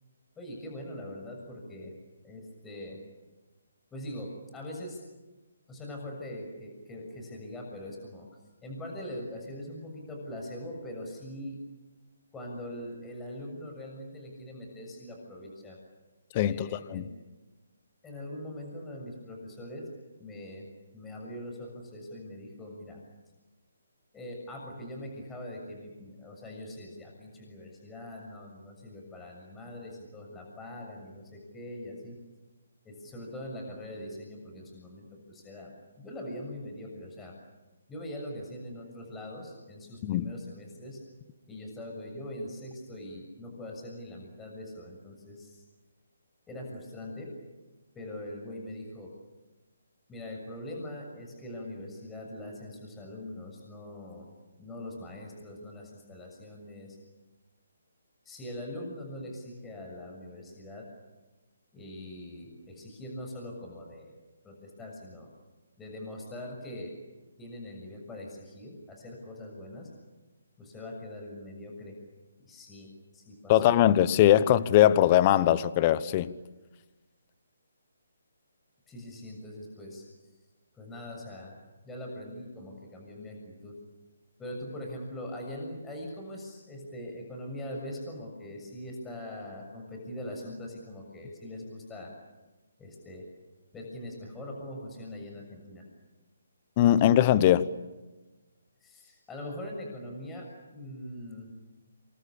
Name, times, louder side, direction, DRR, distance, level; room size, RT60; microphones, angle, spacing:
voice 1, 0.4-1.9 2.2-3.0 3.9-5.0 5.7-8.3 8.6-11.6 12.3-15.8 16.4-17.1 18.0-19.8 20.2-20.7 20.9-23.0 24.1-32.2 32.9-37.3 37.9-41.0 41.5-45.6 46.5-47.3 47.9-49.1 50.1-54.3 54.6-57.0 58.3-60.8 61.7-64.2 64.4-65.3 65.8-66.9 67.4-69.9 70.6-72.0 72.5-72.9 73.1-73.8 78.9-80.0 80.7-81.5 81.8-83.7 84.4-92.1 92.8-93.3 93.7-95.8 98.8-100.5 100.7-101.5, left 1 dB, 10° left, 6.9 m, -42 dB
voice 2, 16.3-17.0 40.0-40.3 73.5-76.3 96.8-97.7, left 12 dB, 30° left, 1.1 m, -21 dB
28.5 x 24.0 x 8.6 m
hypercardioid pair, 155°, 0 cm